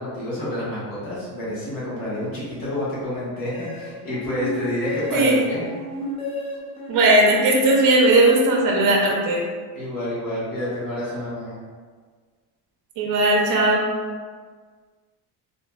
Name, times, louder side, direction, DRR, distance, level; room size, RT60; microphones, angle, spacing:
voice 1, 0.0-5.7 9.7-11.5, left 1 dB, 55° left, -9 dB, 1.3 m, -29 dB
sound 1, 3.5-9.3, left 1 dB, 15° left, 0.4 m, -34 dB
voice 2, 6.9-9.4 13.0-13.8, right 2 dB, 50° right, -2 dB, 0.7 m, -17 dB
3.6 x 2.6 x 2.2 m, 1.6 s
cardioid pair, 145°, 42 cm